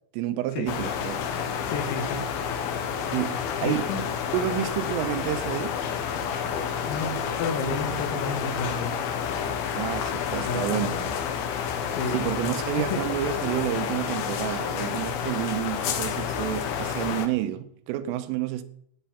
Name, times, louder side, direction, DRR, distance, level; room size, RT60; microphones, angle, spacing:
voice 1, 0.1-1.2 3.1-3.9 4.3-5.8 9.8-11.2 12.1-18.6, right 12 dB, 85° right, 3.3 m, -29 dB
sound 1, 0.7-17.3, left 7 dB, 70° left, 2.4 m, -30 dB
voice 2, 1.7-2.3 3.6-4.1 6.9-8.9 10.4-10.8 12.0-12.2 12.9-13.0, left 4 dB, 85° left, 4.8 m, -31 dB
16.0 x 9.3 x 5.7 m
omnidirectional pair, 5.9 m